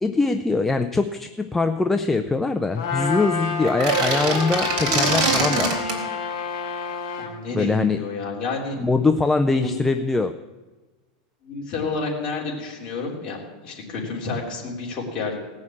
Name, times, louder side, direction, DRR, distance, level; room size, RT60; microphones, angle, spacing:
voice 1, 0.0-6.0 7.5-8.0 8.8-10.3, left 3 dB, 5° left, 7 dB, 0.3 m, -22 dB
Trumpet, 2.8-7.3, left 5 dB, 55° left, 3.7 m, -28 dB
sound 1, 3.6-6.0, right 3 dB, 50° right, 3.3 m, -23 dB
voice 2, 7.2-8.8 9.6-9.8 11.4-15.4, left 3 dB, 25° left, -3 dB, 3.4 m, -30 dB
18.0 x 6.4 x 8.6 m, 1.3 s
supercardioid pair, 165°, 4 cm